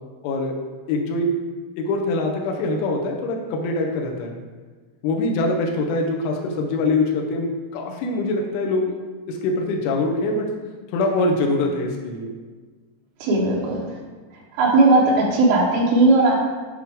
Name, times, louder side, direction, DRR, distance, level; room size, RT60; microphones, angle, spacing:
voice 1, 0.2-0.6 0.9-1.3 1.8-4.4 5.0-8.9 9.3-10.5 10.9-12.3, left 2 dB, 80° left, 0 dB, 3.3 m, -23 dB
voice 2, 13.2-13.8 14.6-15.0 15.3-16.4, right 2 dB, 80° right, -3 dB, 2.2 m, -17 dB
10.0 x 4.4 x 3.6 m, 1.4 s
omnidirectional pair, 5.9 m